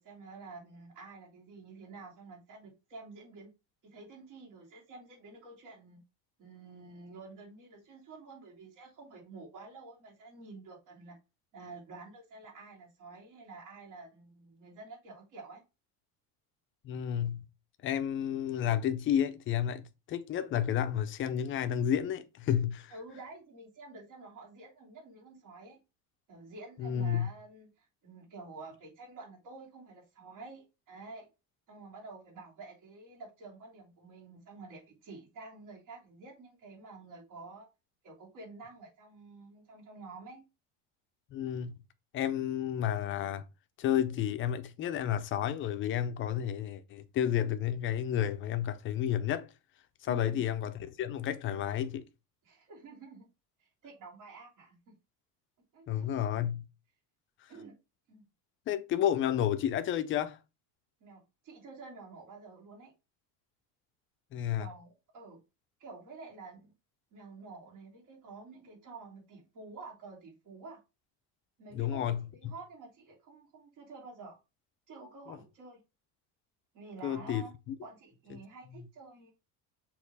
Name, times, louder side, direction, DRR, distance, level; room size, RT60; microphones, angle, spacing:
voice 1, 0.0-3.5 3.8-6.0 6.4-11.2 11.5-15.6 22.9-25.8 26.3-31.3 31.7-37.7 38.0-40.4 50.1-50.4 52.4-53.3 53.6-54.8 55.7-56.1 57.5-57.7 58.1-58.3 61.0-62.9 64.5-65.4 65.8-66.7 67.1-70.8 71.6-74.4 74.9-75.8 76.7-77.5 77.8-79.3, right 3 dB, 55° right, 3.1 m, -49 dB
voice 2, 16.8-17.4 17.8-22.9 26.8-27.3 41.3-41.8 42.1-43.4 43.8-49.5 50.0-52.1 55.9-56.7 58.7-60.4 64.3-64.7 71.7-72.5 77.0-77.7 78.7-78.8, left 10 dB, 35° left, 0.6 m, -31 dB
6.5 x 3.1 x 4.7 m
cardioid pair, 165°, 37 cm